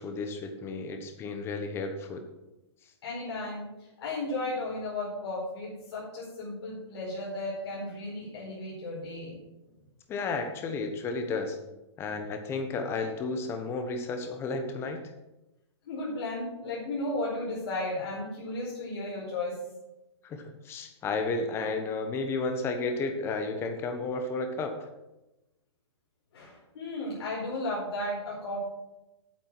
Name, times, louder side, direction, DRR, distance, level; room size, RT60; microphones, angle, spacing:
voice 1, 0.0-2.2 10.1-11.6 12.0-15.0 20.2-24.9, left 3 dB, 15° left, 6 dB, 1.1 m, -32 dB
voice 2, 3.0-3.7 4.0-9.4 15.9-19.6 26.3-28.7, left 2 dB, 60° left, -5 dB, 4.6 m, -34 dB
8.9 x 7.6 x 6.1 m, 0.98 s
hypercardioid pair, 160°, 15 cm